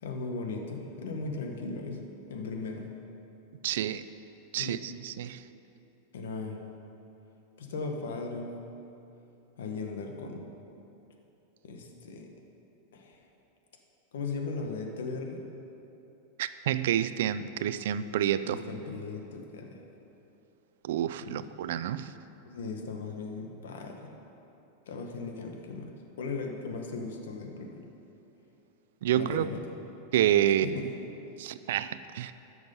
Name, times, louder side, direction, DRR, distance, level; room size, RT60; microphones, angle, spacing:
voice 1, 0.0-2.0 2.3-2.9 4.6-4.8 6.1-6.6 7.6-8.5 9.6-10.4 11.6-12.3 12.9-13.2 14.1-15.5 18.4-19.8 21.3-21.4 22.4-24.1 24.9-27.8 29.1-29.6 30.7-30.9, left 4 dB, 90° left, 2 dB, 1.2 m, -37 dB
voice 2, 3.6-4.0 4.5-5.4 16.4-18.6 20.8-22.1 29.0-29.5 30.1-30.9 31.4-32.3, right 11 dB, 70° right, 14 dB, 0.4 m, -28 dB
13.0 x 6.3 x 5.3 m, 2.9 s
supercardioid pair, 155°, 0 cm